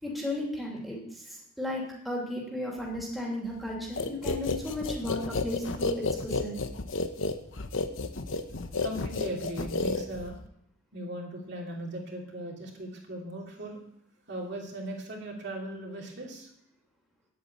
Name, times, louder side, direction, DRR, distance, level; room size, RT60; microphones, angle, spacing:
voice 1, 0.0-6.6, left 1 dB, ahead, -3 dB, 2.9 m, -35 dB
sound 1, 4.0-10.5, left 3 dB, 60° left, 1.0 m, -31 dB
voice 2, 8.8-10.4 10.9-13.8 14.3-16.5, right 1 dB, 50° right, -1 dB, 2.9 m, -38 dB
10.0 x 8.5 x 8.8 m, 0.70 s
head